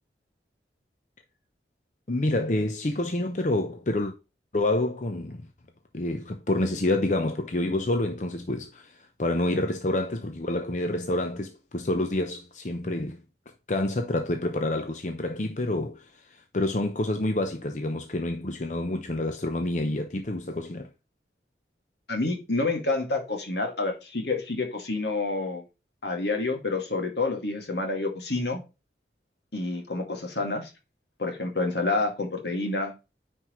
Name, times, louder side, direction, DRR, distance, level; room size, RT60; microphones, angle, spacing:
voice 1, 2.1-4.1 4.5-5.5 5.9-13.2 13.7-20.9, left 1 dB, 45° left, 0.8 m, -28 dB
voice 2, 22.1-25.6 26.0-28.6 29.5-30.7 31.2-32.9, left 3 dB, 70° left, 2.2 m, -28 dB
9.7 x 4.7 x 3.1 m
head